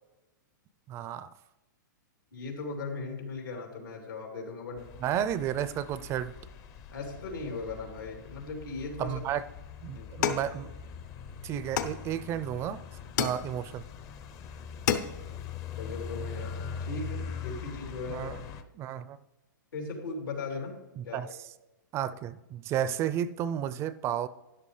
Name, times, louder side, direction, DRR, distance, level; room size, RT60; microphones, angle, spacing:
voice 1, 0.9-1.3 5.0-6.3 9.0-9.4 9.8-10.7 11.4-12.8 13.2-13.8 18.1-18.4 18.8-19.2 21.0-21.3 21.9-24.3, right 10 dB, 25° right, 16 dB, 0.4 m, -32 dB
voice 2, 2.3-4.9 6.9-9.1 9.9-10.3 15.8-18.3 19.7-20.7 21.0-21.2, left 3 dB, 85° left, 1 dB, 3.4 m, -38 dB
sound 1, 4.8-18.6, left 6 dB, 30° left, 0.6 m, -42 dB
sound 2, 10.2-11.2 11.8-12.5 13.2-13.9 14.3-14.4 14.7-15.4, left 8 dB, 60° left, 0.9 m, -32 dB
12.5 x 10.5 x 3.3 m, 1.0 s
hypercardioid pair, 135°, 11 cm